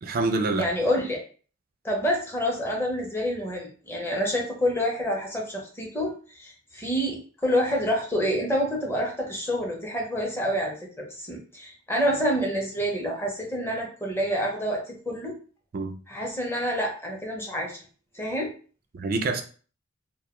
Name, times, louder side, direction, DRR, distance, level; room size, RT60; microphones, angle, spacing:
voice 1, 0.0-0.7 15.7-15.9 18.9-19.4, right 3 dB, 45° right, 0.3 m, -26 dB
voice 2, 0.5-1.2 1.8-15.4 16.1-17.8 18.1-18.5, equal, 10° left, 0.5 m, -28 dB
2.2 x 2.1 x 2.9 m
head